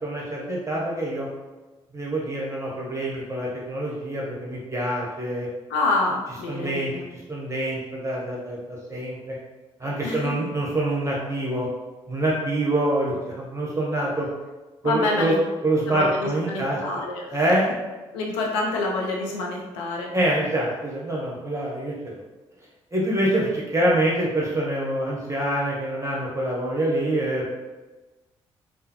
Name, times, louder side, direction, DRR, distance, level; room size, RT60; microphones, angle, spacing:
voice 1, 0.0-1.3 1.9-5.5 6.5-6.9 7.3-9.4 9.8-11.7 12.1-14.3 14.8-15.4 15.6-16.8 17.3-17.7 20.1-22.2 22.9-27.5, right 1 dB, 20° right, -4 dB, 0.9 m, -25 dB
voice 2, 5.7-7.1 10.0-10.3 14.8-15.4 15.9-17.6 18.1-20.1, left 2 dB, 85° left, -1 dB, 0.5 m, -27 dB
3.6 x 2.0 x 2.9 m, 1.2 s
hypercardioid pair, 45°, 14 cm